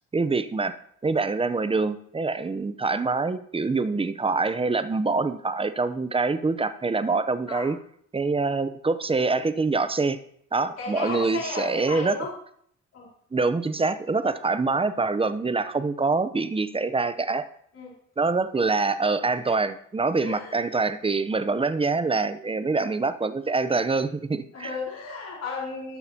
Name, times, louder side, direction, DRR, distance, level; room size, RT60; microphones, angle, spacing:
voice 1, 0.1-0.7 1.0-7.8 8.1-10.2 10.5-12.3 13.3-17.5 18.2-24.7, right 3 dB, 20° right, 12 dB, 0.7 m, -25 dB
voice 2, 10.8-12.3 12.9-13.1 17.7-17.9 20.1-20.6 24.5-26.0, left 4 dB, 60° left, -4 dB, 4.3 m, -33 dB
18.0 x 6.6 x 2.8 m, 0.65 s
cardioid pair, 90°, 30 cm